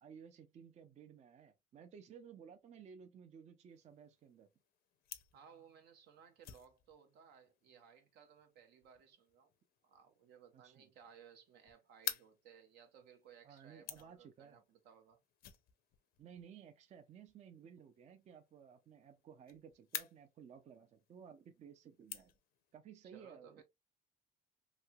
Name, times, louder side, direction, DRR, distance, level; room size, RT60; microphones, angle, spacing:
voice 1, 0.0-4.5 10.5-10.9 13.4-14.6 16.2-22.3 22.7-23.6, right 7 dB, 40° right, 0.4 m, -56 dB
sound 1, 3.7-22.8, left 11 dB, 65° left, 0.5 m, -52 dB
voice 2, 5.3-9.5 9.8-15.2 23.1-23.6, right 7 dB, 80° right, 0.9 m, -61 dB
3.1 x 2.8 x 2.2 m
cardioid pair, 110°, 17 cm